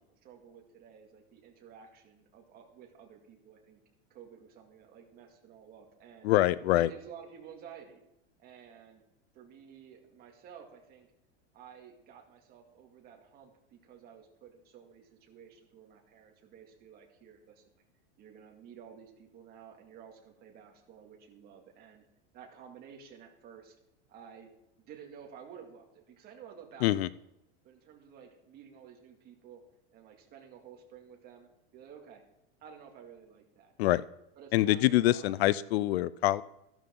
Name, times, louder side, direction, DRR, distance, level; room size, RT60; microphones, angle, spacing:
voice 1, 0.2-3.8 4.1-6.3 6.7-8.0 8.4-9.0 9.3-11.1 11.5-17.6 18.2-22.0 22.3-23.8 24.1-24.5 24.8-27.2 27.6-29.6 29.9-32.2 32.6-33.7 34.4-35.4, right 7 dB, 30° right, 2 dB, 2.3 m, -52 dB
voice 2, 6.2-6.9 26.8-27.1 33.8-34.0 34.5-36.4, left 15 dB, 70° left, 19 dB, 0.5 m, -25 dB
14.5 x 12.0 x 3.8 m, 0.88 s
supercardioid pair, 165°, 33 cm